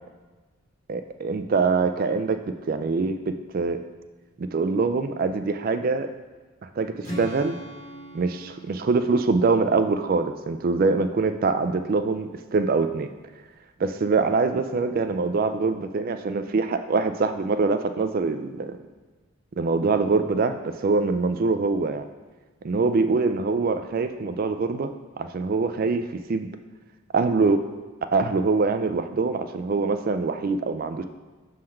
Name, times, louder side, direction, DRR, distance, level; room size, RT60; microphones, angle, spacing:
voice 1, 0.9-2.4 2.7-3.8 4.4-6.1 6.6-7.6 8.1-13.1 13.8-18.8 19.6-22.1 22.6-26.5 27.1-27.6 28.1-31.0, right 4 dB, 45° right, 9 dB, 0.3 m, -24 dB
Strum, 7.0-11.1, equal, 35° left, 1.3 m, -41 dB
6.3 x 3.8 x 4.3 m, 1.3 s
head